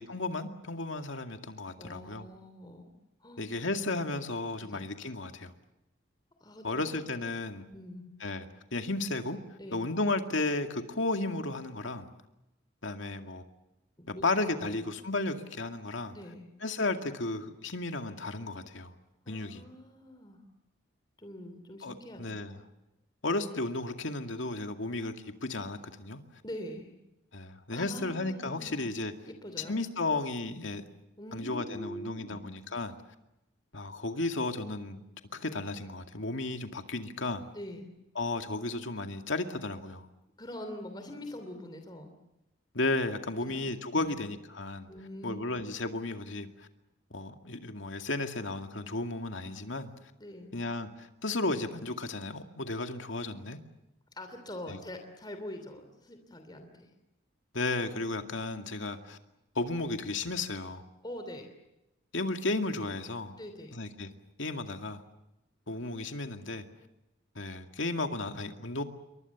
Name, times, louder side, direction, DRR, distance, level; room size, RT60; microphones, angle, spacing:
voice 1, 0.0-2.3 3.4-5.5 6.6-7.7 8.2-8.5 8.7-9.4 9.7-12.1 12.8-13.4 14.2-16.2 16.6-18.9 19.3-19.6 21.8-22.6 23.2-26.2 27.3-29.1 29.7-30.8 31.3-33.0 33.7-35.0 35.3-37.5 38.2-40.1 42.7-44.9 45.2-46.7 47.1-49.9 50.5-53.6 54.7-54.8 57.5-59.2 59.6-60.9 62.1-63.4 63.7-64.1 64.4-65.0 65.7-66.6 67.4-68.8, left 2 dB, 75° left, 6 dB, 2.2 m, -34 dB
voice 2, 1.8-2.9 3.2-3.4 4.6-4.8 6.4-6.9 7.7-8.1 9.6-9.9 14.0-14.3 14.6-14.8 16.1-16.5 19.2-20.4 21.2-22.4 26.4-26.9 27.7-28.8 29.3-29.7 31.2-32.4 37.5-37.9 40.4-42.1 43.4-43.6 43.9-44.2 44.9-45.7 50.2-50.6 54.1-56.9 61.0-61.5 63.4-63.8, left 1 dB, 20° left, 6 dB, 2.9 m, -44 dB
28.5 x 23.5 x 7.2 m, 0.93 s
head